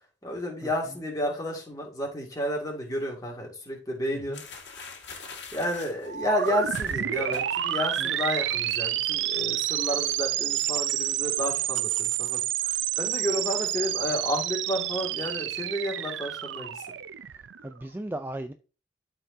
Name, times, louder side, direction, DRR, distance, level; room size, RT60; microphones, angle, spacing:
voice 1, 0.2-4.4 5.5-16.9, equal, 20° left, 2.0 m, -31 dB
sound 1, 4.3-7.9 8.2-8.5 8.8-9.4, left 5 dB, 75° left, 1.9 m, -44 dB
sound 2, 6.1-17.7, right 11 dB, 85° right, 0.5 m, -29 dB
voice 2, 17.2-18.5, right 1 dB, 10° right, 0.3 m, -37 dB
12.5 x 4.5 x 2.7 m
head